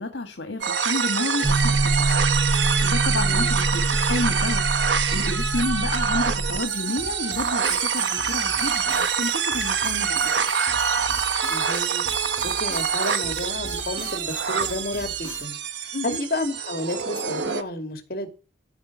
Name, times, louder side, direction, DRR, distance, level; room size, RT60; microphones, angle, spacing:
voice 1, 0.0-2.2 2.5-3.8 4.1-4.6 5.1-10.4 15.9-16.2, left 2 dB, 70° left, 1.6 m, -30 dB
sound 1, 0.6-17.6, right 6 dB, 75° right, 1.2 m, -25 dB
sound 2, 1.4-6.6, right 2 dB, 25° right, 1.1 m, -25 dB
voice 2, 3.1-3.5 11.5-12.0 12.4-15.6 15.8-18.3, left 1 dB, 50° left, 2.4 m, -31 dB
sound 3, 6.6-15.5, left 2 dB, 25° left, 4.2 m, -41 dB
14.0 x 5.0 x 7.3 m
head